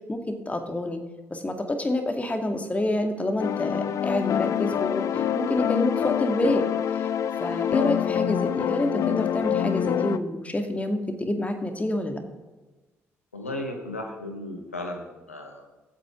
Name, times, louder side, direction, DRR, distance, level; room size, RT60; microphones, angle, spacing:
voice 1, 0.1-1.0 1.3-7.1 7.4-12.2, left 1 dB, 20° left, 5 dB, 2.0 m, -28 dB
sound 1, 3.4-10.2, left 9 dB, 45° left, 0.5 m, -26 dB
voice 2, 13.3-15.7, left 1 dB, 85° left, 4 dB, 1.1 m, -35 dB
23.5 x 8.6 x 3.7 m, 1.2 s
figure-of-eight pair, 40°, 7 cm